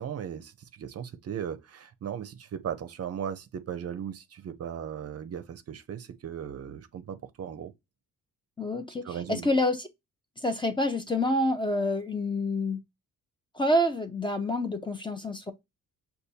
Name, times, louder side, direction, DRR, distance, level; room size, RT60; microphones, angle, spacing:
voice 1, 0.0-7.7 9.0-9.5, right 8 dB, 45° right, 0.6 m, -37 dB
voice 2, 8.6-9.9 10.4-12.8 13.5-15.5, left 1 dB, 15° left, 0.5 m, -27 dB
6.5 x 2.3 x 2.8 m
cardioid pair, 130°, 33 cm